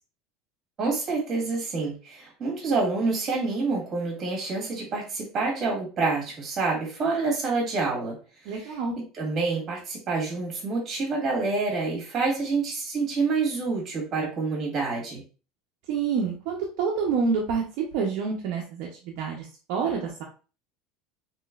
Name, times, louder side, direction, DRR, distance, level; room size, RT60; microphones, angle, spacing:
voice 1, 0.8-8.2 8.4-15.2, right 3 dB, 30° right, -1 dB, 1.6 m, -27 dB
voice 2, 8.5-8.9 15.9-17.6 17.9-20.2, right 5 dB, 65° right, -1 dB, 0.6 m, -27 dB
3.1 x 3.0 x 2.3 m, 0.35 s
cardioid pair, 145°, 0 cm